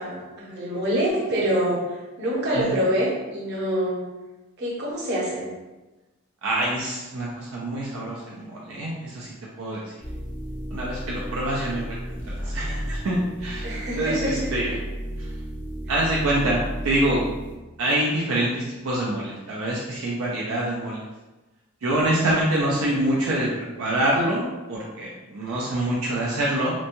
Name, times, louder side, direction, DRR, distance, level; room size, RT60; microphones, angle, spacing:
voice 1, 0.0-4.0 4.6-5.5 13.6-14.5, equal, 55° right, -5 dB, 0.8 m, -26 dB
voice 2, 6.4-9.3 9.6-9.8 10.7-12.0 12.3-13.7 14.0-14.7 15.2-15.3 15.9-17.2 17.8-21.0 21.8-26.7, right 1 dB, 80° right, -5 dB, 0.5 m, -25 dB
sound 1, 10.0-17.6, equal, 10° left, 0.4 m, -33 dB
2.9 x 2.2 x 2.6 m, 1.1 s
head